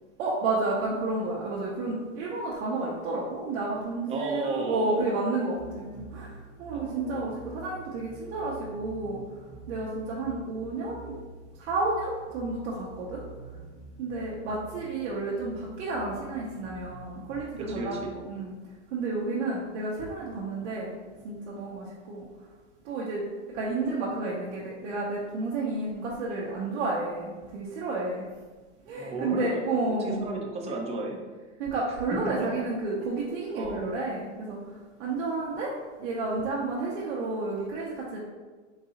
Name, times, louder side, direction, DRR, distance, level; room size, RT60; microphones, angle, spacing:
voice 1, 0.2-9.2 9.7-11.2 11.6-13.2 14.0-18.5 18.9-20.9 21.2-22.3 22.8-23.2 23.5-28.3 28.9-30.2 31.6-34.6 35.0-35.7 36.0-38.2, right 3 dB, 65° right, -5 dB, 0.8 m, -31 dB
voice 2, 4.1-5.2 6.7-7.4 17.6-18.1 29.0-29.6 30.0-31.2 32.2-32.7 33.5-33.9, right 2 dB, 15° right, 1 dB, 0.5 m, -33 dB
sound 1, 5.5-18.3, right 4 dB, 30° left, 1.0 m, -47 dB
3.9 x 2.6 x 2.8 m, 1.3 s
hypercardioid pair, 115°, 36 cm